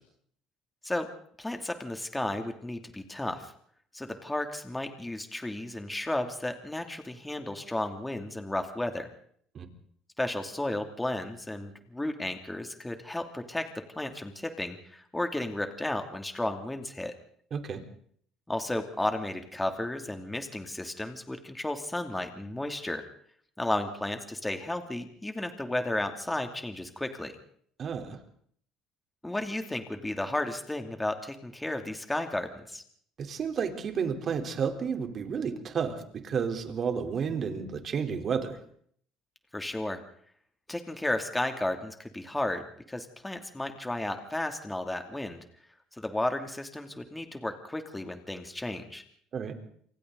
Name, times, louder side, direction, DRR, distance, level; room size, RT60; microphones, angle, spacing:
voice 1, 1.4-3.5 3.9-9.1 10.2-13.7 14.0-17.1 18.5-23.0 23.6-27.3 29.2-32.8 39.5-40.0 40.7-45.4 46.0-49.0, left 1 dB, 10° left, 5 dB, 2.7 m, -33 dB
voice 2, 17.5-17.8 27.8-28.2 33.2-38.6 49.3-49.5, right 6 dB, 45° right, 5 dB, 3.8 m, -31 dB
28.0 x 24.0 x 4.0 m, 0.62 s
supercardioid pair, 85°, 0 cm